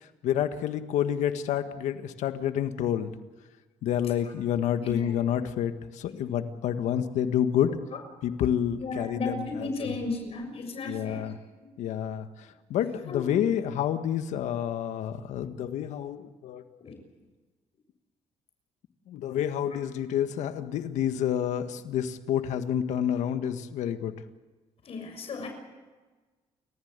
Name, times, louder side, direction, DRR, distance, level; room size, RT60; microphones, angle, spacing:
voice 1, 0.2-3.1 3.8-7.7 8.2-9.5 9.8-9.9 10.9-11.3 11.8-12.3 12.7-16.6 19.1-24.1, left 10 dB, 80° left, 9 dB, 1.7 m, -28 dB
voice 2, 4.8-5.2 6.1-6.3 8.8-11.7 13.1-13.4 16.8-17.0 24.8-25.5, left 3 dB, 55° left, 5 dB, 6.7 m, -35 dB
29.5 x 15.0 x 8.2 m, 1.3 s
cardioid pair, 90°, 12 cm